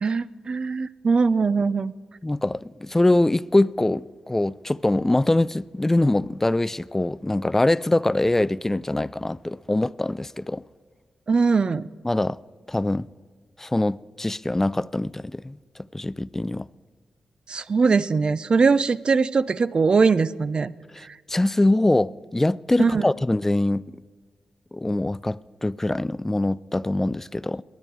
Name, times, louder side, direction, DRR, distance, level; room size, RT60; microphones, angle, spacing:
voice 1, 0.0-1.9 11.3-11.9 17.5-20.7 22.8-23.0, right 4 dB, 50° right, 0.5 m, -21 dB
voice 2, 2.2-10.6 12.0-12.4 12.7-13.1 13.6-15.6 15.9-16.7 20.9-23.9 24.7-27.6, left 2 dB, 20° left, 0.4 m, -23 dB
22.0 x 9.5 x 4.6 m
supercardioid pair, 40°, 2 cm